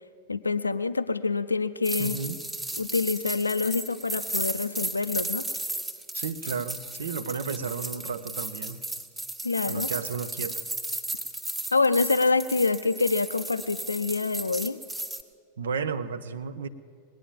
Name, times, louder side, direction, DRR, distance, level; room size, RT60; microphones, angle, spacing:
voice 1, 0.3-2.2 2.8-5.4 9.4-9.9 11.7-14.8, left 4 dB, 80° left, 12 dB, 0.4 m, -26 dB
sound 1, 1.8-15.2, right 1 dB, 10° right, 1.1 m, -35 dB
voice 2, 2.0-2.4 6.1-8.8 9.7-10.6 15.6-16.7, right 5 dB, 65° right, 14 dB, 0.7 m, -33 dB
20.5 x 9.1 x 7.2 m, 2.2 s
figure-of-eight pair, 90°, 0 cm